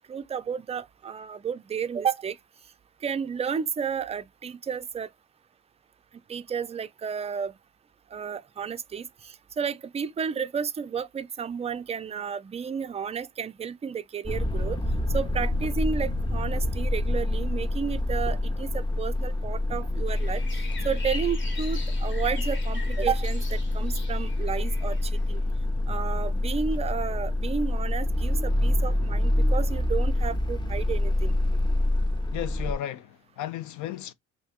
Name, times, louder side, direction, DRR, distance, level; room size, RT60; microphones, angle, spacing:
voice 1, 0.1-2.4 3.0-5.1 6.3-7.5 8.1-14.8 15.1-25.4 25.9-31.3, right 7 dB, 20° right, 0.3 m, -32 dB
sound 1, 14.3-32.7, left 1 dB, 15° left, 0.7 m, -26 dB
sound 2, 20.1-25.3, left 4 dB, 40° left, 1.2 m, -42 dB
voice 2, 32.3-34.1, left 12 dB, 75° left, 0.6 m, -34 dB
2.9 x 2.7 x 3.4 m
cardioid pair, 90°, 30 cm